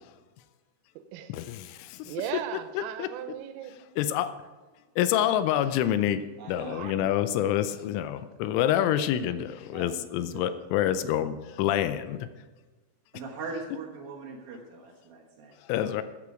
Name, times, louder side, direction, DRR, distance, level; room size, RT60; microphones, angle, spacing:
voice 1, 1.3-2.2 2.8-3.1 4.0-4.3 5.0-12.3 15.7-16.0, left 11 dB, 85° left, 11 dB, 3.0 m, -27 dB
voice 2, 2.1-3.7 6.7-6.9, right 11 dB, 90° right, 10 dB, 3.4 m, -37 dB
voice 3, 6.4-6.8 9.7-10.0 10.3-10.5 13.1-15.5, right 4 dB, 65° right, -1 dB, 2.6 m, -40 dB
14.0 x 8.8 x 5.0 m, 1.2 s
omnidirectional pair, 5.8 m